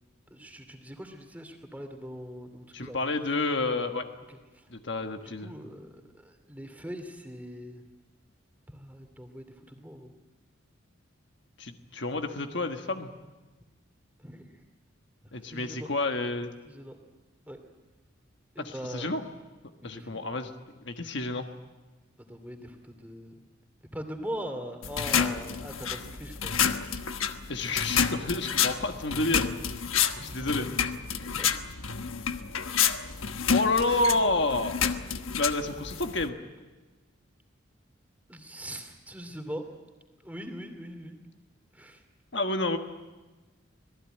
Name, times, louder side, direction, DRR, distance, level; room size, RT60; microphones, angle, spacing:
voice 1, 0.3-3.0 4.3-4.7 5.2-7.8 8.7-10.1 14.2-14.6 15.2-15.9 16.6-17.0 17.5-17.6 18.5-19.1 19.8-20.2 22.2-23.3 23.9-26.6 30.2-31.6 38.3-39.7 40.2-41.2 41.7-42.0, equal, 10° right, 5 dB, 2.5 m, -42 dB
voice 2, 2.7-4.1 4.7-5.5 11.6-13.1 15.3-16.5 18.6-19.2 19.8-20.5 20.8-21.4 27.5-29.5 30.3-30.7 33.5-34.8 35.4-36.4 42.3-42.8, left 2 dB, 60° left, 5 dB, 1.5 m, -29 dB
sound 1, 24.8-36.3, left 7 dB, 90° left, 1.2 m, -29 dB
26.0 x 19.0 x 9.0 m, 1.2 s
head